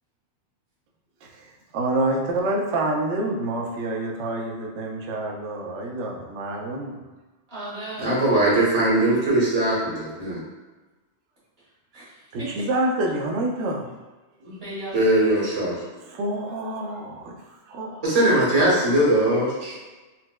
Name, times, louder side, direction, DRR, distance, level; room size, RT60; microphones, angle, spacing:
voice 1, 1.2-7.0 12.3-13.9 16.0-18.0, right 1 dB, 90° right, 0 dB, 0.9 m, -27 dB
voice 2, 7.5-8.2 11.9-12.1 12.4-12.5 14.4-15.3, right 1 dB, 60° right, -11 dB, 1.8 m, -36 dB
voice 3, 8.0-10.4 14.9-15.8 18.0-19.8, right 1 dB, 35° right, -7 dB, 1.0 m, -20 dB
4.2 x 2.1 x 2.2 m, 1.2 s
omnidirectional pair, 1.1 m